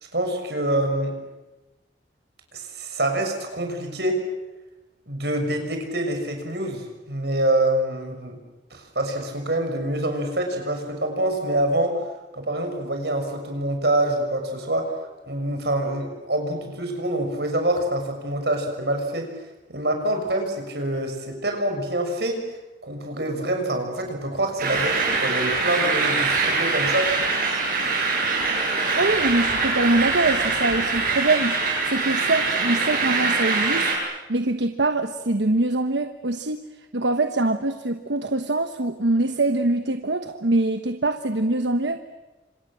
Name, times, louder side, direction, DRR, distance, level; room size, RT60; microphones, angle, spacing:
voice 1, 0.1-1.1 2.5-4.2 5.1-8.4 8.7-12.0 12.3-14.9 15.2-19.3 19.7-22.4 22.8-27.1, right 1 dB, 65° right, 4 dB, 6.4 m, -26 dB
sound 1, 24.6-34.0, right 4 dB, 50° right, 7.8 m, -23 dB
voice 2, 28.9-42.0, right 2 dB, 85° right, 8 dB, 1.2 m, -24 dB
29.0 x 26.5 x 7.6 m, 1.1 s
head